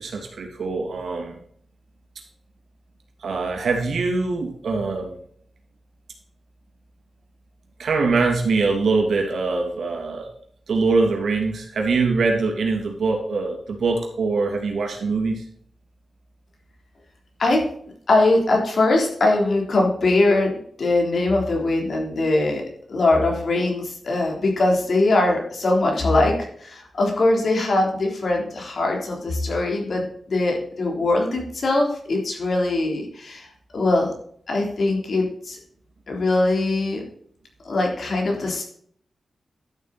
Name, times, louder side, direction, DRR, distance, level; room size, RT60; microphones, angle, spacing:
voice 1, 0.0-1.4 3.2-5.2 7.8-10.3 10.7-15.4, right 3 dB, 80° right, 2 dB, 3.0 m, -23 dB
voice 2, 18.1-33.5 33.7-34.1 34.5-35.6 36.1-37.0 37.6-38.6, left 2 dB, 55° left, 0 dB, 3.7 m, -21 dB
12.0 x 7.7 x 4.3 m, 0.62 s
wide cardioid pair, 135°, 0 cm